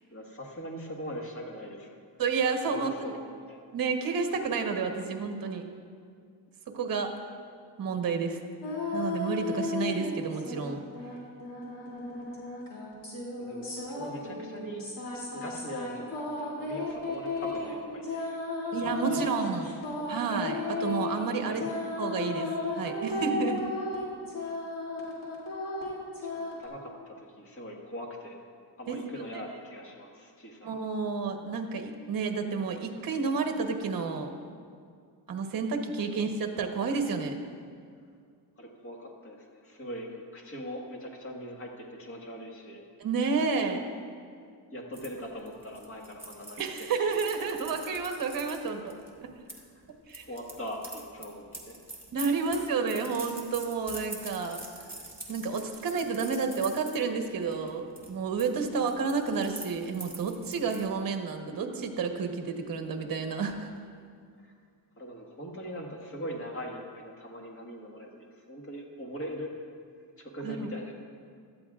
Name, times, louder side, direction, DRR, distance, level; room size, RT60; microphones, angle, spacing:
voice 1, 0.1-1.9 2.6-3.6 13.4-14.8 15.3-19.2 19.5-20.1 21.5-21.8 26.2-28.4 28.8-30.7 36.0-36.3 38.6-42.8 44.7-47.2 49.5-49.8 50.3-51.8 64.4-64.6 65.0-68.1 68.4-69.5 70.2-71.0, equal, 30° left, -1 dB, 1.7 m, -41 dB
voice 2, 2.2-2.9 3.7-5.7 6.7-7.2 7.8-8.4 8.9-10.8 18.7-19.7 20.1-21.6 22.0-23.6 28.9-29.0 30.6-34.3 35.3-37.4 43.0-43.8 46.6-48.9 49.2-49.3 50.1-50.3 52.1-54.6 55.3-63.7 70.4-70.7, right 5 dB, 55° right, 5 dB, 1.2 m, -30 dB
sound 1, 8.6-10.7 10.9-26.7, left 2 dB, 50° left, 2.8 m, -34 dB
sound 2, 44.9-49.6 50.1-57.0 57.4-57.7 57.9-58.5 58.7-60.9, right 2 dB, 5° right, 1.3 m, -44 dB
17.0 x 12.5 x 2.4 m, 2.2 s
wide cardioid pair, 155°, 42 cm